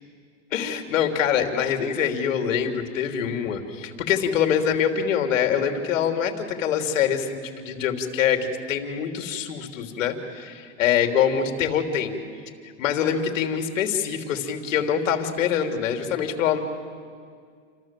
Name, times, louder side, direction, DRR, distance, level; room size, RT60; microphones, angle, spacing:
voice 1, 0.5-12.2 12.6-16.6, left 8 dB, 80° left, 5 dB, 3.2 m, -24 dB
28.5 x 26.0 x 7.6 m, 2.1 s
supercardioid pair, 160°, 38 cm